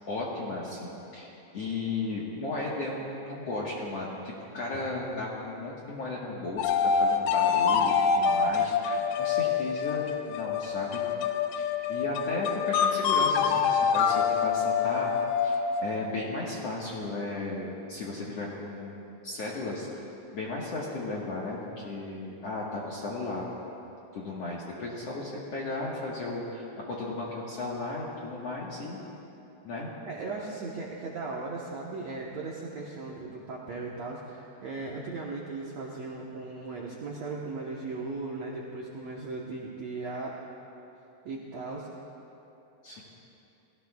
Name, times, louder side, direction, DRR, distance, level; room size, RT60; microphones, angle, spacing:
voice 1, 0.1-11.0 11.5-15.1 15.4-20.1 20.3-23.5 24.1-29.0 29.6-29.9 42.8-43.0, left 2 dB, 60° left, -5 dB, 1.8 m, -35 dB
sound 1, 6.6-16.0, left 6 dB, 80° left, 2.4 m, -26 dB
voice 2, 30.0-40.3 41.2-41.9, right 3 dB, 70° right, -3 dB, 1.6 m, -37 dB
29.0 x 18.0 x 2.3 m, 2.9 s
omnidirectional pair, 4.7 m